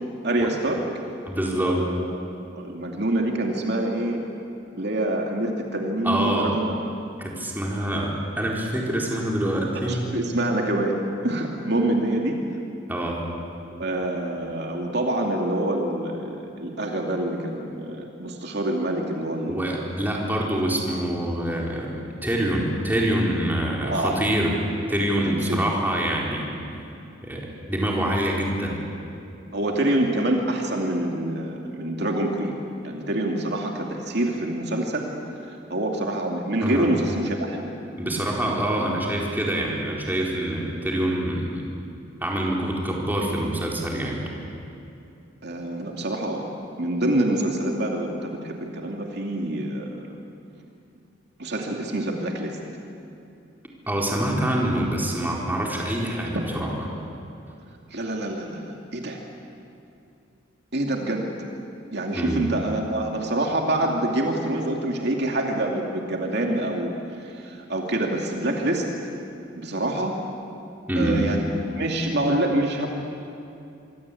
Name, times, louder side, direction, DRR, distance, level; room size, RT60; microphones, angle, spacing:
voice 1, 0.2-0.8 1.5-2.0 2.6-4.2 4.7-6.7 9.9-12.4 13.8-19.6 23.8-24.2 25.2-25.6 29.5-32.6 32.8-35.1 35.5-37.7 45.4-46.5 46.8-50.2 51.4-52.6 56.3-56.5 57.9-59.2 60.7-61.3 61.9-68.9 69.5-70.2 71.0-71.5 71.7-72.9, right 1 dB, 60° right, 1 dB, 2.6 m, -26 dB
voice 2, 1.2-1.9 6.0-6.5 7.2-10.1 12.9-13.2 19.5-26.5 27.2-28.9 36.6-36.9 38.0-41.6 42.2-44.3 53.9-56.9 62.1-62.5 70.9-71.2, right 1 dB, 10° right, -2 dB, 4.2 m, -25 dB
25.0 x 24.5 x 8.5 m, 2.6 s
head